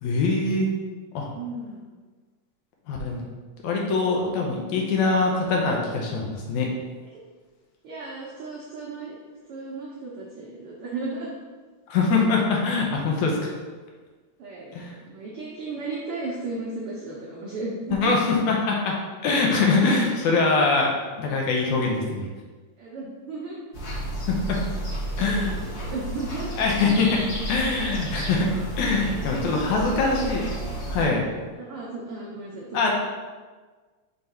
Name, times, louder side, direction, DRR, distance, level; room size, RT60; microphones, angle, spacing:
voice 1, 0.0-0.7 1.1-1.3 2.9-3.2 3.6-6.7 11.9-13.4 14.7-15.0 17.9-20.9 21.2-22.3 24.3-24.6 25.2-25.6 26.6-27.2 27.5-28.5 28.8-30.5 30.9-31.2 32.7-32.9, left 3 dB, 75° left, 0 dB, 2.1 m, -23 dB
voice 2, 1.3-1.8 7.1-7.2 7.8-9.1 9.5-11.4 14.4-14.7 15.0-18.2 22.8-23.6 25.1-26.5 29.0-30.4 30.9-31.2 31.5-32.9, right 3 dB, 90° right, -4 dB, 1.2 m, -35 dB
sound 1, 23.7-31.1, right 1 dB, 60° left, 1.0 m, -32 dB
5.4 x 4.0 x 4.5 m, 1.4 s
omnidirectional pair, 3.6 m